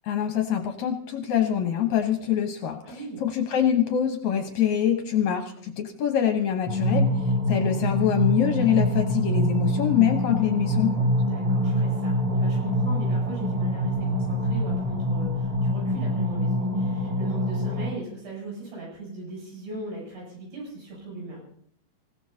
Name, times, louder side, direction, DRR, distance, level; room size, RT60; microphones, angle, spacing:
voice 1, 0.1-7.1 7.5-11.1, left 9 dB, 70° left, 4 dB, 1.8 m, -24 dB
voice 2, 2.8-3.2 11.2-21.4, right 2 dB, 90° right, -3 dB, 10.0 m, -38 dB
sound 1, 6.7-17.9, equal, 45° right, 5.0 m, -25 dB
26.0 x 16.0 x 2.8 m, 0.65 s
omnidirectional pair, 4.7 m